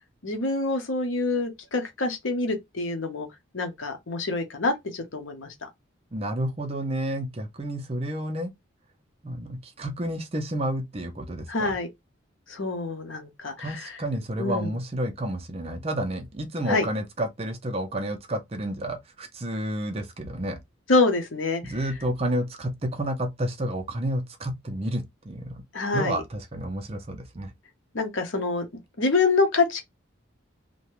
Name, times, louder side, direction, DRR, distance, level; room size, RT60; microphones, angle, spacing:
voice 1, 0.2-3.3 3.5-5.7 11.5-11.9 12.5-13.7 14.4-14.7 16.7-16.9 20.9-21.6 25.7-26.2 27.9-28.6 29.0-29.8, left 3 dB, 75° left, 0.8 m, -26 dB
voice 2, 6.1-8.5 9.2-11.8 13.6-20.6 21.6-25.6 25.9-27.5, right 1 dB, 30° right, 0.5 m, -30 dB
2.8 x 2.2 x 3.1 m
head